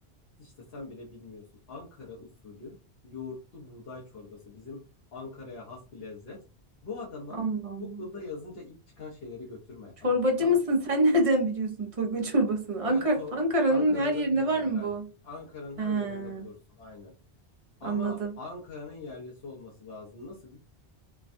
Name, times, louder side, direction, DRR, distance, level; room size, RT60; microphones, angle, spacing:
voice 1, 0.4-2.8 3.0-4.8 5.1-6.4 6.8-7.4 7.8-10.6 12.9-13.3 13.7-14.9 15.2-17.1 17.8-20.6, left 3 dB, 65° left, -3 dB, 1.0 m, -42 dB
voice 2, 7.4-8.0 10.0-15.1 15.8-16.5 17.8-18.3, right 1 dB, 40° right, 1 dB, 0.7 m, -26 dB
3.3 x 2.2 x 2.5 m, 0.35 s
omnidirectional pair, 1.1 m